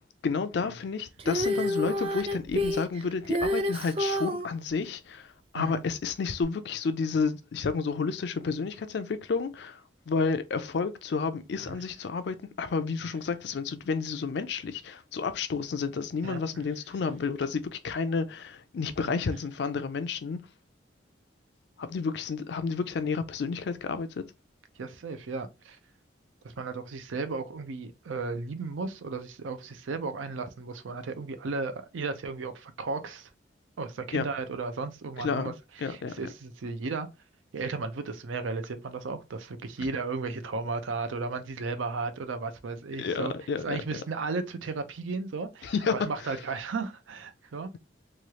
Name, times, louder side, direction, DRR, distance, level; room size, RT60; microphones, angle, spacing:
voice 1, 0.2-20.4 21.8-24.2 34.1-34.3 35.2-35.5 35.8-36.1 43.0-43.8 45.6-45.9 46.3-46.4, left 5 dB, 60° left, 0.4 m, -31 dB
Female singing, 1.2-4.5 6.4-6.5, left 1 dB, 30° right, 0.3 m, -28 dB
voice 2, 24.8-25.8 26.6-33.3 33.8-35.5 35.8-37.1 37.5-43.3 43.6-47.7, right 4 dB, 85° right, 0.5 m, -34 dB
3.1 x 2.3 x 2.8 m
head